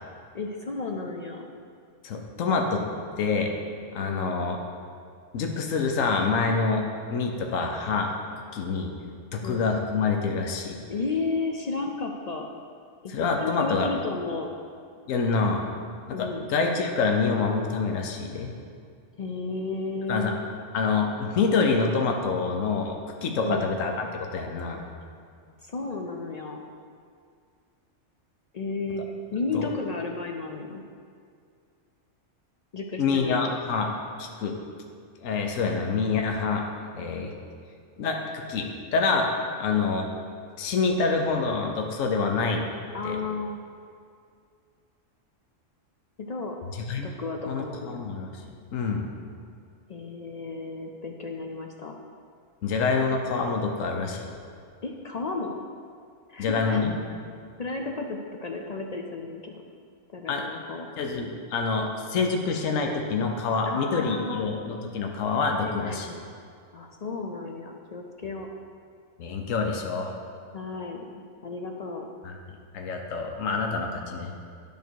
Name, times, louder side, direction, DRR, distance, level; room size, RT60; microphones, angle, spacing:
voice 1, 0.3-1.5 4.0-4.4 9.4-9.7 10.9-12.5 13.0-13.1 13.4-14.5 16.1-16.5 19.2-20.3 23.4-23.7 25.6-26.6 28.5-29.0 29.3-30.8 32.7-33.6 42.9-43.6 46.2-46.6 47.0-48.1 49.9-52.0 54.8-55.6 56.3-56.8 57.6-59.6 60.1-60.9 63.7-64.5 65.6-66.2 66.7-68.5 70.5-72.1, left 3 dB, 55° left, 2 dB, 0.4 m, -33 dB
voice 2, 2.0-2.8 3.2-3.5 3.9-4.6 5.3-8.1 8.5-8.9 9.3-10.8 13.1-13.9 15.1-15.6 16.1-18.5 20.1-20.3 20.7-23.0 23.2-24.1 24.3-24.8 29.5-29.7 33.0-33.9 34.2-34.6 35.2-36.6 36.9-37.3 38.0-39.3 39.6-40.1 40.6-42.6 43.0-43.2 46.9-47.1 47.5-48.4 48.7-49.1 52.6-54.3 56.4-56.9 60.3-60.4 61.0-66.1 69.2-70.1 72.2-72.3 72.7-74.3, left 4 dB, 85° left, 3 dB, 1.2 m, -26 dB
10.5 x 5.2 x 4.6 m, 2.2 s
omnidirectional pair, 1.3 m